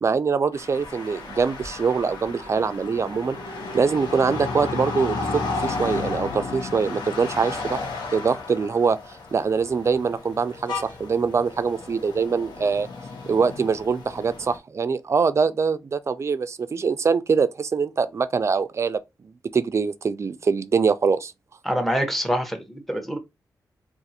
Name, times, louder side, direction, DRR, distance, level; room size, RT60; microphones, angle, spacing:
voice 1, 0.0-3.4 3.7-7.8 8.1-9.0 9.3-12.9 13.3-19.0 19.5-21.3, right 5 dB, 40° right, 0.4 m, -23 dB
sound 1, 0.5-14.6, left 3 dB, 80° left, 1.0 m, -33 dB
voice 2, 21.6-23.2, equal, ahead, 0.8 m, -25 dB
2.5 x 2.4 x 4.1 m
cardioid pair, 90°, 7 cm